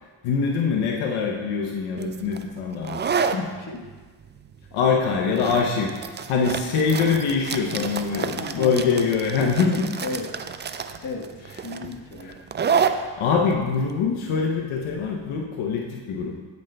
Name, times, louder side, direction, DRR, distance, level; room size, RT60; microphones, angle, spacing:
voice 1, 0.2-3.0 3.3-3.5 4.7-5.9 6.3-9.9 12.8-16.3, left 5 dB, 85° left, 0 dB, 0.8 m, -24 dB
sound 1, 2.0-15.4, right 6 dB, 25° right, 0.3 m, -30 dB
voice 2, 3.6-3.9 7.6-9.1 9.6-10.4 11.0-12.4, left 3 dB, 40° left, 1 dB, 1.2 m, -36 dB
11.5 x 5.3 x 2.2 m, 1.4 s
supercardioid pair, 55°, 48 cm